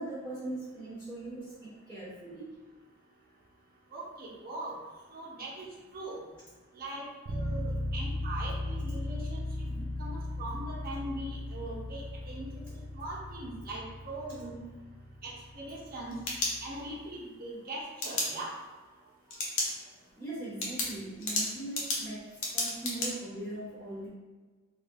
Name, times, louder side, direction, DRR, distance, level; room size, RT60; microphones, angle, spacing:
voice 1, 0.0-2.5 19.0-19.1 19.6-19.9 20.2-24.1, right 2 dB, 10° left, -11 dB, 0.9 m, -40 dB
voice 2, 3.9-4.8 5.1-5.7 5.9-6.2 6.7-12.6 12.9-14.6 15.2-16.1 16.6-18.5, right 1 dB, 45° right, -3 dB, 0.8 m, -41 dB
sound 1, 7.3-17.0, left 1 dB, 75° right, 0.4 m, -37 dB
sound 2, 15.9-17.1 18.0-18.3 19.3-19.7 20.1-20.2 20.6-23.1, left 2 dB, 70° left, 0.9 m, -32 dB
3.8 x 3.3 x 2.2 m, 1.3 s
head